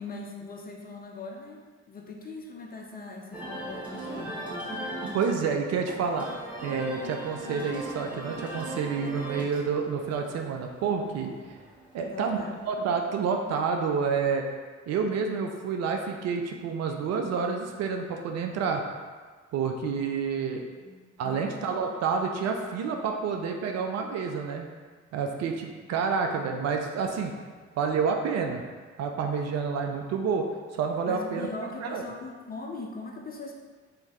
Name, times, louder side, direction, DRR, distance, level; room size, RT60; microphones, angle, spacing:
voice 1, 0.0-4.4 12.0-12.6 20.8-21.6 31.0-33.5, left 3 dB, 25° left, 1 dB, 0.4 m, -40 dB
sound 1, 3.3-12.7, right 1 dB, 5° right, 1.4 m, -39 dB
voice 2, 5.1-6.3 6.6-11.3 11.9-12.4 12.7-14.5 14.9-18.8 19.5-20.6 21.2-24.6 25.1-27.3 27.8-28.6 29.0-30.4 30.7-31.5 31.8-32.0, right 5 dB, 45° right, 3 dB, 0.4 m, -29 dB
3.3 x 2.7 x 3.0 m, 1.5 s
figure-of-eight pair, 40°, 36 cm